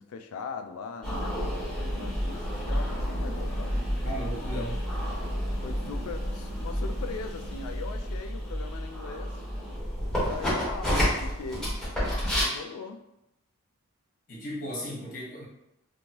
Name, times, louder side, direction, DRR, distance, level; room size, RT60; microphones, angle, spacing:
voice 1, 0.0-3.8 4.5-4.9 5.6-9.4 10.2-11.9 12.4-13.1, left 5 dB, 65° left, 7 dB, 0.3 m, -40 dB
sound 1, 1.0-12.4, equal, ahead, 1.2 m, -30 dB
voice 2, 4.0-4.8 14.3-15.4, equal, 40° left, -5 dB, 1.1 m, -36 dB
3.0 x 2.6 x 2.9 m, 0.88 s
head